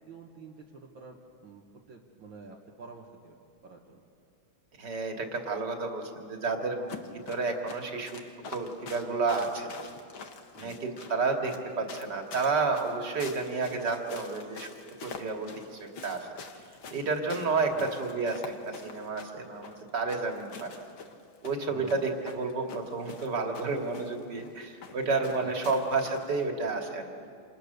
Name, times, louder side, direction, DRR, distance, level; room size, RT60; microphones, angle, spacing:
voice 1, 0.0-4.0 10.6-10.8 17.8-17.9 21.7-22.0 25.4-25.7, right 5 dB, 70° right, -2 dB, 2.4 m, -49 dB
voice 2, 4.8-6.9 7.3-8.2 8.5-9.7 10.6-14.7 15.0-16.2 16.9-20.7 21.4-27.3, right 4 dB, 55° right, 2 dB, 3.0 m, -31 dB
sound 1, 6.9-26.4, left 5 dB, 75° left, 2.4 m, -46 dB
28.5 x 28.0 x 6.8 m, 2.3 s
omnidirectional pair, 2.2 m